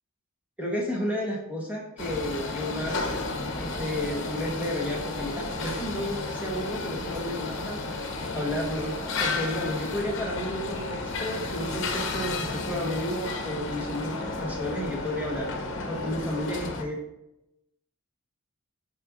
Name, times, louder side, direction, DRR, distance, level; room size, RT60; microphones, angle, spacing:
voice 1, 0.6-3.1 3.6-7.8 8.3-8.9 9.2-15.5 15.9-17.0, left 1 dB, 5° right, -2 dB, 1.3 m, -32 dB
sound 1, 2.0-16.8, left 3 dB, 60° left, 0.9 m, -33 dB
7.9 x 5.0 x 2.6 m, 0.88 s
head